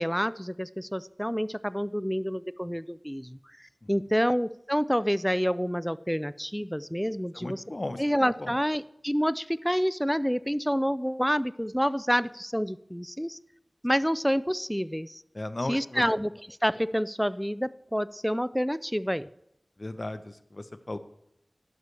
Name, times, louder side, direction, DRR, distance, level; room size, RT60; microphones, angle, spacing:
voice 1, 0.0-3.4 3.9-7.6 8.0-13.4 13.8-15.2 15.7-16.3 16.6-19.3, equal, ahead, 17 dB, 0.4 m, -28 dB
voice 2, 7.3-8.0 8.4-8.6 15.3-16.0 19.8-21.0, left 2 dB, 45° left, 11 dB, 0.8 m, -36 dB
12.0 x 11.0 x 3.3 m, 0.79 s
wide cardioid pair, 50°, 0 cm